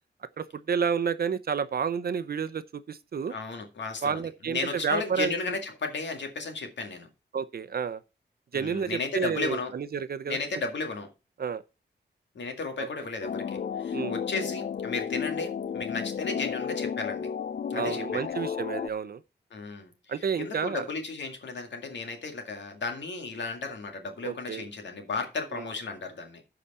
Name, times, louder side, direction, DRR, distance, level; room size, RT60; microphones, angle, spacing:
voice 1, 0.4-3.3 4.0-5.3 7.3-8.0 8.5-10.4 11.4-11.6 13.9-14.2 17.7-19.2 20.1-20.9 24.2-24.7 25.5-25.6, right 6 dB, 60° right, 0.7 m, -30 dB
voice 2, 3.3-7.1 8.5-9.7 10.3-11.1 12.3-17.3 17.7-18.4 19.5-26.4, left 4 dB, 85° left, 2.1 m, -34 dB
sound 1, 13.2-18.9, left 7 dB, 55° left, 0.5 m, -32 dB
14.5 x 5.0 x 4.2 m
wide cardioid pair, 135°, 18 cm